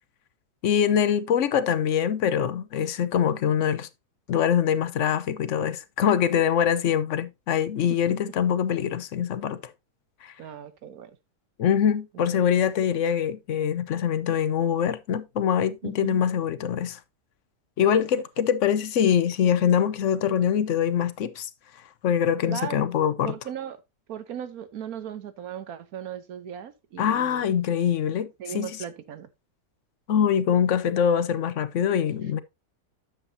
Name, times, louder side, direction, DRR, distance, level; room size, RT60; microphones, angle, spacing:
voice 1, 0.6-3.9 4.3-9.6 10.2-10.3 11.6-17.0 17.8-21.5 22.0-23.3 27.0-28.3 28.5-28.7 30.1-32.4, left 8 dB, 65° left, 0.9 m, -24 dB
voice 2, 10.4-11.1 12.3-12.4 15.8-16.2 18.0-18.1 22.5-22.8 23.2-23.8 24.1-27.5 28.4-29.3, right 9 dB, 75° right, 1.3 m, -37 dB
8.9 x 7.3 x 2.7 m
omnidirectional pair, 1.6 m